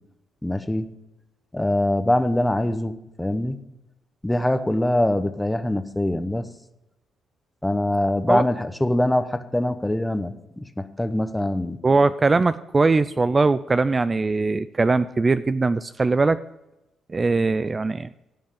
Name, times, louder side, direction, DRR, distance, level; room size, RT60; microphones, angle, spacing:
voice 1, 0.4-0.9 1.5-3.6 4.2-6.5 7.6-11.8, left 1 dB, 10° left, 11 dB, 1.0 m, -23 dB
voice 2, 11.8-16.4 17.1-18.1, right 3 dB, 30° right, 14 dB, 0.4 m, -21 dB
16.0 x 5.4 x 5.0 m, 0.94 s
supercardioid pair, 60°, 0 cm